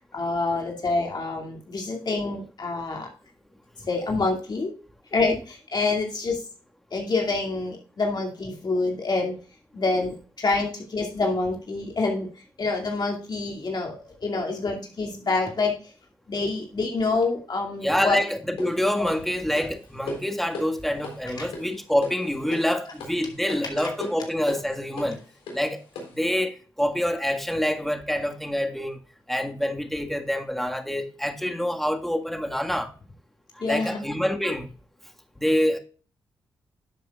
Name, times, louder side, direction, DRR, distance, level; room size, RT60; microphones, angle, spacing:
voice 1, 0.1-3.1 3.9-4.7 5.1-6.4 6.9-9.4 9.7-12.3 12.6-15.8 16.3-18.2 21.4-21.5 23.8-23.9 33.6-34.0, left 3 dB, 50° left, 2.4 m, -27 dB
voice 2, 17.8-25.2 25.5-25.8 26.1-29.0 29.3-32.9 33.5-34.7 35.4-35.8, equal, ahead, 1.7 m, -26 dB
sound 1, 18.6-26.3, left 2 dB, 90° left, 3.8 m, -39 dB
12.0 x 7.4 x 2.4 m
supercardioid pair, 50°, 9 cm